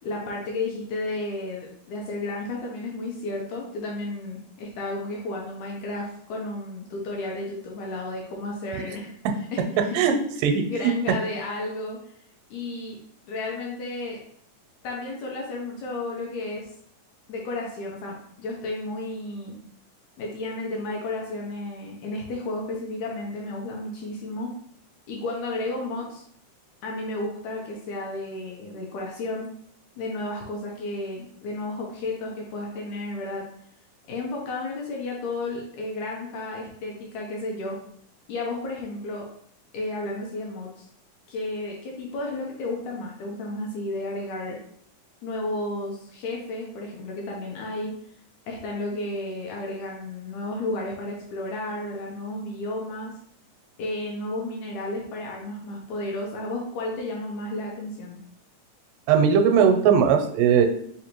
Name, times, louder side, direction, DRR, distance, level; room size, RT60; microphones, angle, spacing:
voice 1, 0.0-9.1 9.5-10.0 10.7-12.0 12.5-13.0 13.3-14.2 14.8-16.7 17.3-19.6 20.2-24.5 25.1-26.2 26.8-29.5 30.0-33.5 34.1-37.8 38.3-39.3 39.7-40.9 41.3-44.6 45.2-47.9 48.5-53.1 53.8-58.2, left 2 dB, 75° left, -1 dB, 1.8 m, -32 dB
voice 2, 10.4-10.9 59.1-60.7, right 7 dB, 85° right, 6 dB, 2.2 m, -19 dB
5.0 x 2.5 x 3.0 m, 0.64 s
omnidirectional pair, 3.8 m